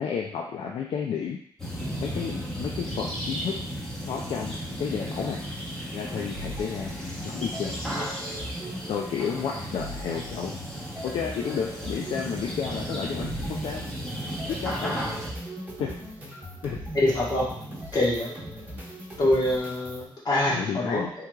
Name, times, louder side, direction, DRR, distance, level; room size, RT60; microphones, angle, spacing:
voice 1, 0.0-1.4 2.0-3.6 4.1-5.4 5.9-6.9 7.2-7.8 8.9-10.6 11.0-13.8 14.5-15.0 15.8-15.9 16.3-16.4 16.6-16.8 18.7-18.8 20.5-21.1, left 7 dB, 75° left, 0 dB, 0.4 m, -31 dB
sound 1, 1.6-15.3, equal, 5° left, 0.9 m, -35 dB
sound 2, 6.3-20.1, right 1 dB, 20° right, 1.0 m, -39 dB
voice 2, 16.9-17.5 17.9-18.3 19.2-21.0, left 1 dB, 45° left, -6 dB, 1.3 m, -24 dB
3.5 x 3.1 x 2.3 m, 0.62 s
cardioid pair, 105°, 9 cm